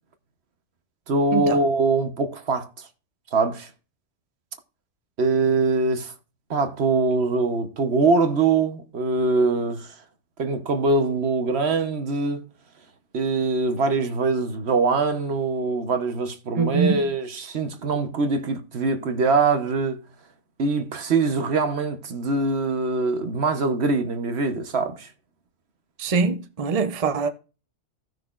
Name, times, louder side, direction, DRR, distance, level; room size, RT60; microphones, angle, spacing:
voice 1, 1.1-2.7 3.3-3.7 5.2-6.1 6.5-9.9 10.4-12.5 13.1-20.0 20.6-25.1, right 3 dB, 60° right, 1.2 m, -23 dB
voice 2, 16.6-17.1 26.0-27.3, right 4 dB, 35° right, 0.7 m, -23 dB
16.0 x 6.1 x 2.4 m
omnidirectional pair, 1.2 m